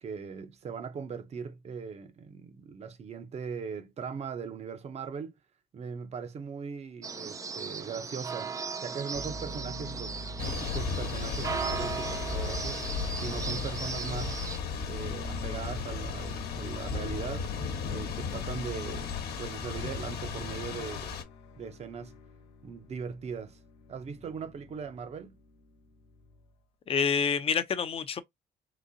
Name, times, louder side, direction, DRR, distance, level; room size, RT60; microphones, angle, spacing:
voice 1, 0.0-5.3 5.7-8.5 8.8-10.2 10.4-12.8 13.2-14.4 14.9-17.5 17.9-21.1 21.6-22.1 22.6-23.6 23.9-25.4, right 6 dB, 40° right, 0.7 m, -39 dB
sound 1, 7.0-14.6, right 5 dB, 20° right, 0.3 m, -37 dB
sound 2, 9.1-26.5, left 3 dB, 90° left, 0.7 m, -45 dB
Thunder / Rain, 10.4-21.2, left 5 dB, 70° left, 1.1 m, -35 dB
voice 2, 26.9-28.2, left 6 dB, 35° left, 0.6 m, -27 dB
4.0 x 2.6 x 2.6 m
cardioid pair, 110°, 17 cm